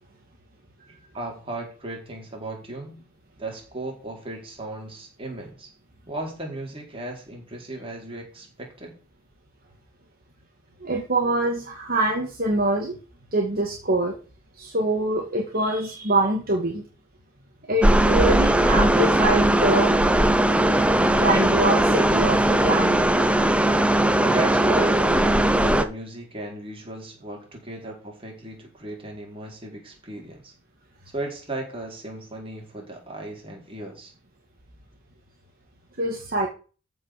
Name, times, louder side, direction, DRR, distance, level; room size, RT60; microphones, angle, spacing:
voice 1, 1.1-3.0 3.4-5.7 6.1-8.9 24.2-25.1 25.6-30.5 31.1-34.1, right 2 dB, 25° right, 0 dB, 4.4 m, -36 dB
voice 2, 10.8-13.0 13.3-14.1 14.6-16.8 17.7-19.9 21.1-23.0 36.0-36.5, right 2 dB, 45° right, 1 dB, 2.1 m, -24 dB
sound 1, 17.8-25.8, right 1 dB, 5° right, 0.8 m, -19 dB
14.0 x 5.6 x 6.8 m, 0.36 s
head